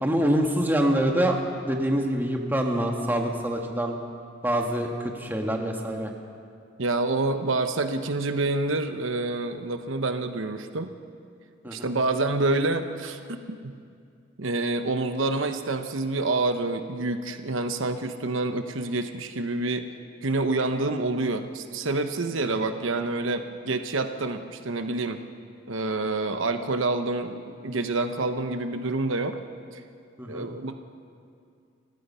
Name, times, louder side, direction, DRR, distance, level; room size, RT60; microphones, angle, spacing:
voice 1, 0.0-1.4 1.6-4.0 4.4-6.1 11.6-11.9 22.4-22.6 30.2-30.5, right 1 dB, 10° right, 2 dB, 1.7 m, -25 dB
voice 2, 6.8-10.9 11.7-13.2 13.6-13.7 14.4-19.9 20.2-25.2 25.7-29.4 29.7-29.8 30.3-30.7, right 2 dB, 70° right, 8 dB, 1.0 m, -27 dB
30.0 x 16.0 x 5.6 m, 2.4 s
head